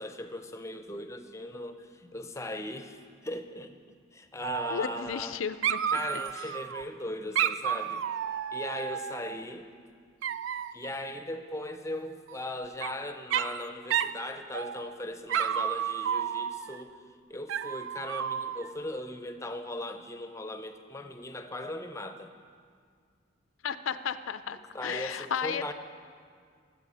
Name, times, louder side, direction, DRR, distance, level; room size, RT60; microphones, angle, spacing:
voice 1, 0.0-3.8 4.1-5.4 5.9-8.1 8.5-9.7 10.7-17.0 17.3-22.3 24.7-25.7, left 1 dB, 15° left, 8 dB, 0.6 m, -38 dB
Dog, 4.4-5.3 5.6-6.8 7.4-9.4 10.2-10.9 12.3-12.9 13.3-13.6 13.9-14.2 14.5-15.0 15.3-16.8 17.5-18.7, right 9 dB, 75° right, 0.3 m, -31 dB
voice 2, 4.7-5.8 23.6-25.7, left 7 dB, 90° left, 13 dB, 0.5 m, -33 dB
20.5 x 8.0 x 4.2 m, 2.1 s
head